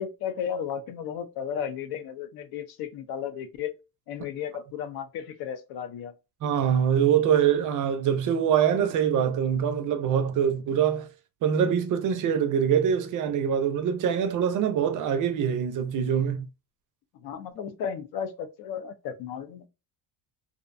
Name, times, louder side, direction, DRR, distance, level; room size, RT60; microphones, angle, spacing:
voice 1, 0.0-3.7 4.1-6.1 17.2-19.7, left 8 dB, 65° left, 0.6 m, -34 dB
voice 2, 6.4-11.1 11.4-16.5, right 8 dB, 55° right, 0.5 m, -24 dB
2.5 x 2.1 x 2.4 m
cardioid pair, 140°, 39 cm